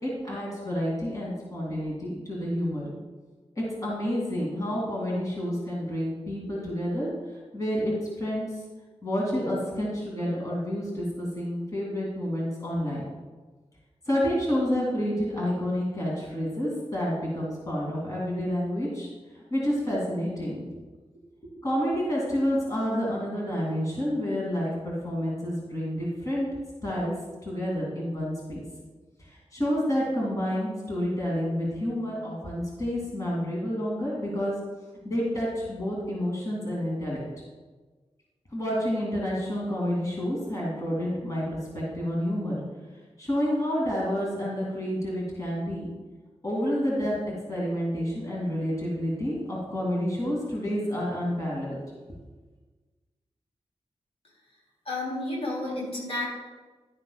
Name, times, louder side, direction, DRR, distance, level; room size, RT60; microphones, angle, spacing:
voice 1, 0.0-2.9 3.5-7.1 7.5-8.5 9.0-13.1 14.1-19.1 19.3-20.7 21.4-26.5 26.8-27.1 27.4-28.6 29.2-34.6 35.0-37.2 38.5-41.4 41.7-42.6 43.2-45.9 46.4-51.8, equal, 30° left, -4 dB, 2.7 m, -29 dB
voice 2, 54.8-56.3, left 2 dB, 60° left, -4 dB, 3.1 m, -31 dB
11.5 x 9.6 x 2.4 m, 1.3 s
wide cardioid pair, 105°, 11 cm